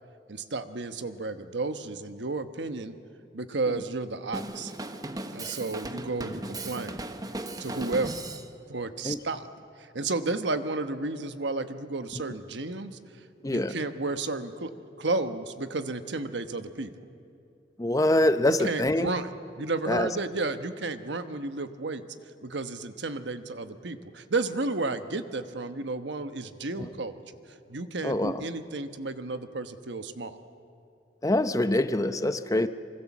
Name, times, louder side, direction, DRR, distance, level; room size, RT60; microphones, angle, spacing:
voice 1, 0.3-2.9 3.3-4.7 5.3-7.0 7.6-8.1 8.7-9.5 9.8-13.0 13.4-14.7 15.0-16.9 18.5-19.3 19.6-22.0 22.4-27.4 27.7-30.4, right 3 dB, 80° right, 10 dB, 1.2 m, -32 dB
Drum kit, 4.3-8.5, right 2 dB, 20° right, 1.0 m, -37 dB
voice 2, 13.4-13.8 17.8-19.1 19.9-20.1 26.8-26.9 28.0-28.4 31.2-32.7, left 1 dB, 20° left, 11 dB, 0.7 m, -25 dB
26.5 x 24.0 x 7.3 m, 2.5 s
head